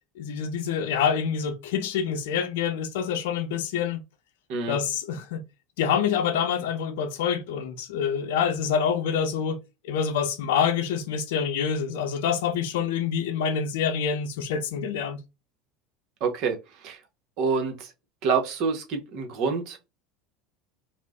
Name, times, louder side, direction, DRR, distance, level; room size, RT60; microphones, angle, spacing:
voice 1, 0.2-4.0 4.7-5.4 5.8-15.2, left 7 dB, 85° left, 0.5 m, -26 dB
voice 2, 16.2-16.6 16.8-17.0 17.4-17.9 18.2-19.8, right 5 dB, 60° right, 0.9 m, -27 dB
2.5 x 2.1 x 3.5 m
supercardioid pair, 110°, 0 cm